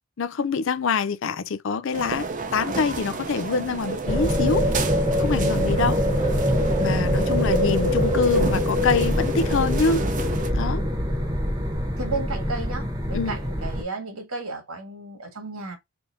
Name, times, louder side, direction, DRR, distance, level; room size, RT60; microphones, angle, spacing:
voice 1, 0.2-2.3 2.5-4.7 5.2-6.0 6.8-10.1 10.5-10.8 13.1-13.4, left 5 dB, 60° left, 0.4 m, -25 dB
sound 1, 1.9-10.5, right 3 dB, 35° right, 0.6 m, -32 dB
sound 2, 4.1-13.8, equal, 15° right, 1.1 m, -23 dB
voice 2, 12.0-15.8, right 3 dB, 80° right, 1.6 m, -33 dB
4.1 x 3.4 x 2.6 m
head